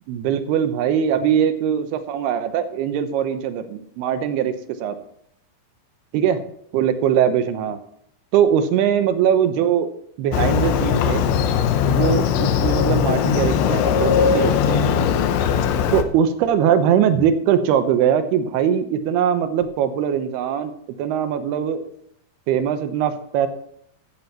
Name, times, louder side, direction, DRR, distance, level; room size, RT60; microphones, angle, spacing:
voice 1, 0.1-4.5 4.8-5.0 6.1-6.4 6.7-7.8 8.3-9.9 10.2-11.3 11.9-15.1 15.9-20.7 21.0-21.8 22.5-23.5, right 9 dB, 75° right, 9 dB, 2.7 m, -21 dB
Motorcycle, 10.3-16.0, left 8 dB, 85° left, 3.2 m, -19 dB
15.0 x 11.5 x 3.0 m, 0.71 s
omnidirectional pair, 5.2 m